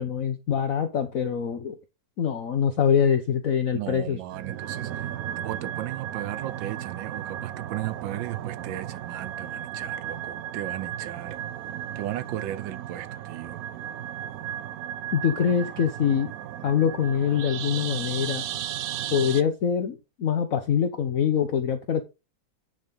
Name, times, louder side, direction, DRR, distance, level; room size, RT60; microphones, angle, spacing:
voice 1, 0.0-1.8 2.2-4.2 15.1-16.3 16.6-18.4 19.1-22.0, left 8 dB, 55° left, 1.1 m, -24 dB
voice 2, 3.7-5.1 5.4-11.4 11.9-13.6, right 13 dB, 90° right, 1.4 m, -35 dB
sound 1, 4.3-19.4, right 11 dB, 70° right, 0.9 m, -35 dB
10.0 x 3.8 x 5.3 m
omnidirectional pair, 2.0 m